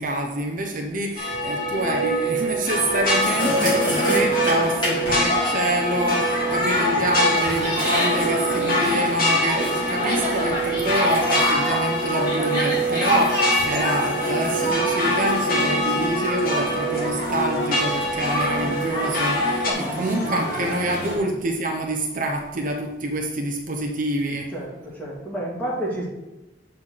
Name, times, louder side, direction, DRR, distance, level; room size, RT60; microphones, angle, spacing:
voice 1, 0.0-19.7 20.0-24.5, right 1 dB, 50° right, 2 dB, 0.8 m, -27 dB
sound 1, 1.2-19.7, equal, 55° left, 1.8 m, -24 dB
sound 2, 2.7-21.2, equal, 25° left, 3.0 m, -28 dB
voice 2, 19.6-20.6 21.1-21.3 24.5-26.1, right 1 dB, 10° left, -5 dB, 2.4 m, -31 dB
7.2 x 4.4 x 6.5 m, 1.0 s
head